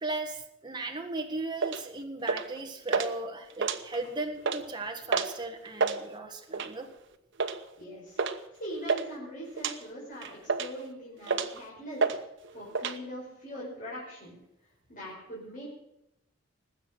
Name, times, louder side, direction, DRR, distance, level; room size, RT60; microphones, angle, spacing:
voice 1, 0.0-6.9, right 2 dB, 20° right, 3 dB, 1.6 m, -37 dB
sound 1, 1.6-1.8 2.3-2.6 2.9-3.1 3.5-4.1 4.4-4.6 5.1-5.4 5.7-6.0 6.5-6.8 7.4-7.6 8.2-8.4 8.6-9.1 9.6-9.8 10.2-10.8 11.3-11.6 12.0-12.2 12.4-13.0, right 4 dB, 65° right, 1.1 m, -29 dB
voice 2, 7.8-8.2 8.6-12.1 12.5-14.4 14.6-15.7, equal, 45° left, -6 dB, 5.2 m, -41 dB
20.0 x 8.2 x 6.5 m, 0.85 s
head